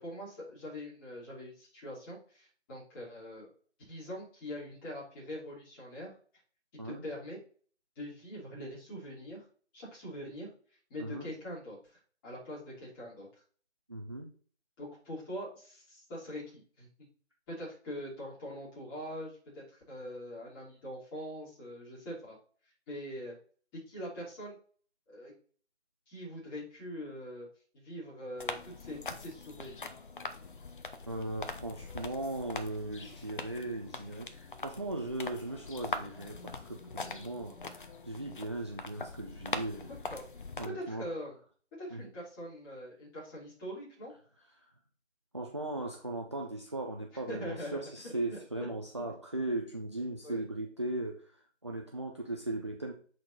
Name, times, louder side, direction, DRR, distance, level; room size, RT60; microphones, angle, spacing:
voice 1, 0.0-3.5 3.9-6.1 6.8-7.4 8.0-9.4 9.7-10.5 10.9-11.8 12.2-13.4 14.8-16.9 17.5-22.4 22.9-23.4 23.7-24.6 25.1-25.3 26.1-27.5 27.7-29.9 39.9-40.2 40.6-41.4 41.8-44.1 47.1-48.7 50.2-50.4, equal, 20° left, -7 dB, 3.5 m, -43 dB
voice 2, 13.9-14.3 31.1-39.9 40.6-41.1 41.9-42.0 45.3-51.4 51.6-52.9, right 2 dB, 25° right, 0 dB, 0.5 m, -38 dB
sound 1, 28.4-40.7, left 4 dB, 45° left, 0.8 m, -42 dB
7.7 x 4.3 x 4.1 m, 0.43 s
figure-of-eight pair, 150°, 35 cm